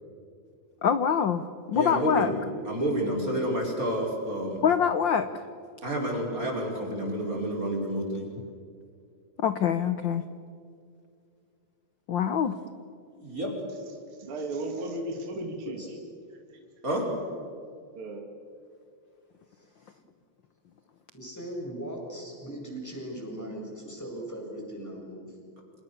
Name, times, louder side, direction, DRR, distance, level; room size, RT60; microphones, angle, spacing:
voice 1, 0.8-1.4 1.7-2.3 4.6-5.3 9.4-10.2 12.1-12.5, left 7 dB, 85° left, 11 dB, 1.0 m, -24 dB
voice 2, 1.7-2.3 2.6-4.6 5.8-8.3 13.2-13.5 16.8-17.1, right 1 dB, 25° right, 0 dB, 5.5 m, -29 dB
voice 3, 14.2-15.9 16.5-16.6 17.9-18.3, right 1 dB, 45° right, 2 dB, 3.5 m, -35 dB
voice 4, 15.3-15.9 21.1-25.3, right 1 dB, 5° left, -1 dB, 7.4 m, -39 dB
30.0 x 27.0 x 6.9 m, 2.3 s
omnidirectional pair, 3.4 m